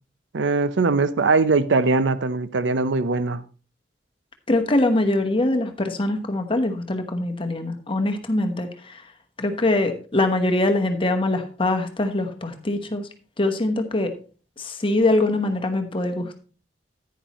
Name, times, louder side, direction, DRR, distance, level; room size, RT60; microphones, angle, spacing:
voice 1, 0.3-3.4, right 3 dB, 90° right, 0.6 m, -21 dB
voice 2, 4.5-9.1 9.4-13.1 13.4-14.1 14.6-16.4, left 2 dB, 30° left, 1.0 m, -23 dB
10.0 x 9.5 x 3.0 m
head